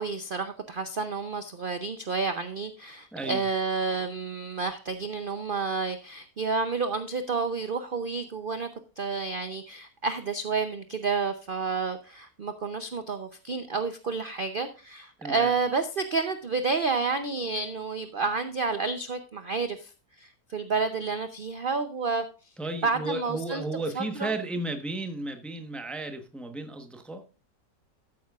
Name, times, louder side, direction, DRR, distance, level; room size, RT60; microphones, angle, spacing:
voice 1, 0.0-8.7 9.0-19.9 20.2-22.2 22.8-23.6 24.0-24.3, right 4 dB, 55° right, 0.5 m, -30 dB
voice 2, 15.2-15.5 22.6-27.2, right 2 dB, ahead, 0.7 m, -34 dB
12.5 x 9.6 x 2.4 m
omnidirectional pair, 1.9 m